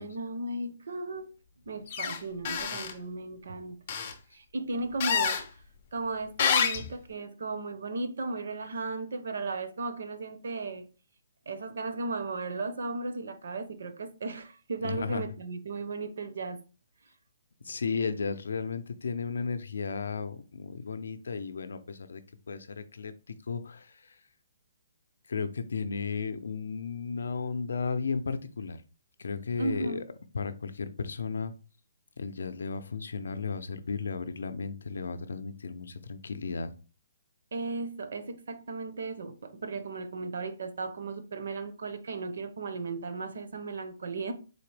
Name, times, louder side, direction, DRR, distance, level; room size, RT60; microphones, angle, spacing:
voice 1, 0.0-1.3 1.7-3.8 4.3-5.5 5.9-10.8 11.5-16.6 29.6-30.0 37.5-44.3, right 3 dB, 55° right, 0.6 m, -35 dB
sound 1, 1.9-2.2 2.4-2.9 3.9-4.1 5.0-5.4 6.4-6.9, left 7 dB, 25° left, 0.4 m, -27 dB
voice 2, 14.8-15.2 17.7-22.2 22.5-23.9 25.3-28.8 29.2-30.0 30.3-31.5 32.2-36.7, left 5 dB, 80° left, 0.5 m, -34 dB
4.1 x 2.9 x 3.2 m
hypercardioid pair, 180°, 0 cm